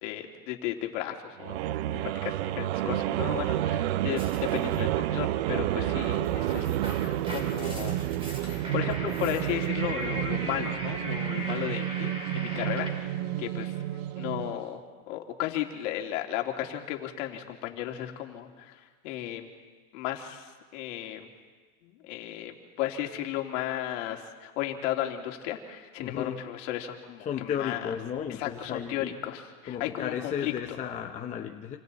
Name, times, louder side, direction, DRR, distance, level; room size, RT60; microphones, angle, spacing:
voice 1, 0.0-1.6 1.9-8.0 8.4-13.8 14.2-19.5 19.9-21.3 21.8-27.8 28.4-30.5, left 12 dB, 55° left, 3 dB, 2.8 m, -35 dB
sound 1, 1.4-14.7, right 13 dB, 45° right, 0.6 m, -30 dB
sound 2, 4.2-4.8 6.1-13.1, equal, 10° right, 3.3 m, -40 dB
voice 2, 26.0-26.5 27.2-29.2 29.7-31.8, left 8 dB, 15° left, 2 dB, 0.8 m, -34 dB
28.0 x 25.0 x 4.2 m, 1.4 s
supercardioid pair, 145°, 45 cm